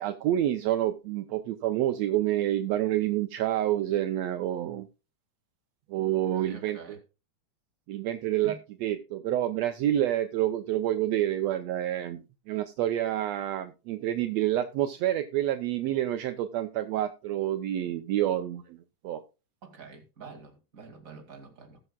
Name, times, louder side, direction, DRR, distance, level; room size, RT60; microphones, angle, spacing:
voice 1, 0.0-4.9 5.9-7.0 7.9-18.8 19.0-19.2, right 12 dB, 80° right, 1.5 m, -28 dB
voice 2, 6.0-7.0 8.4-8.6 19.6-21.8, right 4 dB, 25° right, 2.4 m, -47 dB
19.5 x 6.7 x 2.3 m
omnidirectional pair, 3.7 m